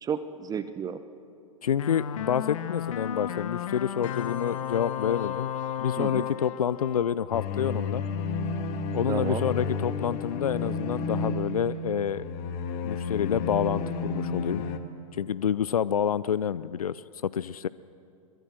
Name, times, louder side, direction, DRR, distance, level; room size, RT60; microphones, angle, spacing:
voice 1, 0.0-1.0 6.0-6.3 9.1-9.5, right 7 dB, 20° right, 12 dB, 0.8 m, -32 dB
voice 2, 1.6-5.5 5.8-8.0 8.9-12.3 12.8-14.6 15.1-17.7, left 8 dB, 85° left, 18 dB, 0.5 m, -28 dB
sound 1, 1.8-7.9, left 10 dB, 65° left, 1.6 m, -34 dB
sound 2, 7.3-14.8, left 4 dB, 45° left, 1.8 m, -31 dB
22.5 x 22.0 x 7.6 m, 2.6 s
hypercardioid pair, 110°, 18 cm